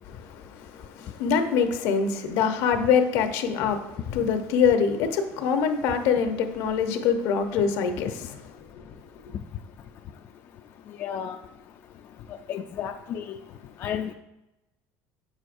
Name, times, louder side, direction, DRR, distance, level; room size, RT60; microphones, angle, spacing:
voice 1, 0.2-8.4, left 6 dB, 75° left, 0.8 m, -24 dB
voice 2, 11.0-11.4 12.5-13.4 13.8-14.1, left 8 dB, 40° left, 0.3 m, -32 dB
8.3 x 6.3 x 2.6 m
cardioid pair, 145°, 6 cm